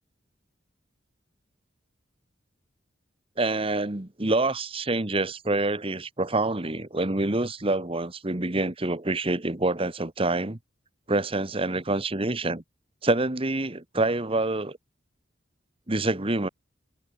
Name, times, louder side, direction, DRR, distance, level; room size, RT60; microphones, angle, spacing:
voice 1, 3.4-10.6 11.1-12.6 13.0-14.8 15.9-16.5, right 2 dB, 30° right, 1.3 m, -26 dB
head